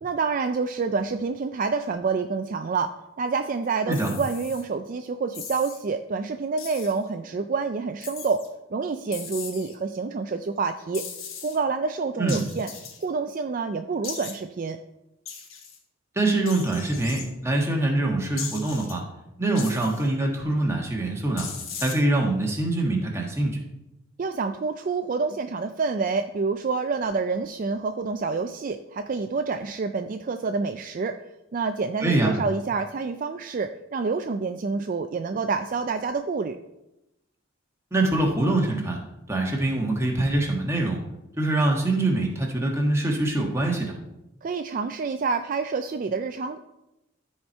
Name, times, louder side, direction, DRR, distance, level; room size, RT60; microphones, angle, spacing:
voice 1, 0.0-8.4 8.7-11.0 11.4-12.7 13.0-14.8 24.2-31.2 31.5-36.6 44.4-46.6, right 4 dB, 40° right, 7 dB, 0.3 m, -28 dB
sound 1, 3.9-4.6 5.3-5.8 6.6-7.0 8.0-8.5 9.1-9.7 10.9-11.6 12.3-13.0 14.0-14.3 15.3-15.8 16.5-17.3 18.4-18.9 19.5-20.1 21.4-21.9, left 6 dB, 80° left, 1.4 m, -38 dB
voice 2, 16.1-19.0 19.4-21.5 21.8-23.6 32.0-32.3 37.9-39.0 39.3-41.0 41.4-43.9, right 2 dB, 15° right, 0 dB, 1.3 m, -24 dB
13.0 x 4.4 x 4.4 m, 0.92 s
head